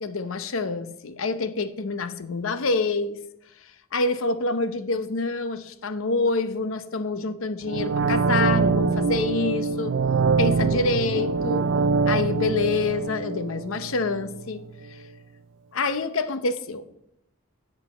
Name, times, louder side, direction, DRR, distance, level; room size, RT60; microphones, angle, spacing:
voice 1, 0.0-3.2 3.9-10.0 10.4-11.7 12.0-14.6 14.9-15.0 15.7-16.9, left 3 dB, 75° left, 11 dB, 0.8 m, -27 dB
sound 1, 7.6-14.5 14.8-14.9, right 4 dB, 60° right, 0.4 m, -24 dB
9.8 x 6.3 x 6.1 m, 0.82 s
head